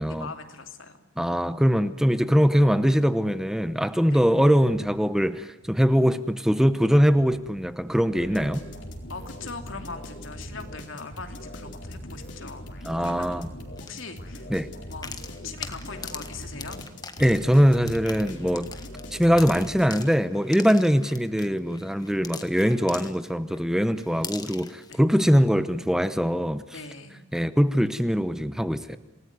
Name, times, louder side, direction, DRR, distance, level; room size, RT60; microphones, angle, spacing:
voice 1, 0.0-1.0 4.1-4.3 9.1-12.7 13.0-13.3 13.8-14.5 14.9-15.1 15.4-16.8 20.7-20.8 24.9-25.0 26.7-27.2, left 4 dB, 85° left, 2.9 m, -40 dB
voice 2, 1.2-8.6 12.8-13.5 14.5-14.7 17.2-18.7 19.1-26.6 27.3-29.0, equal, 5° right, 0.8 m, -22 dB
sound 1, 5.5-5.8 6.6-6.8 7.1-8.3 9.0-10.6 11.1-12.5 12.9-13.0 13.3-14.5, left 1 dB, 45° right, 2.9 m, -52 dB
sound 2, 8.2-20.4, equal, 65° left, 4.4 m, -41 dB
sound 3, 13.8-13.9 14.9-23.6 24.0-24.9, left 5 dB, 20° left, 1.5 m, -41 dB
28.0 x 19.0 x 9.4 m
head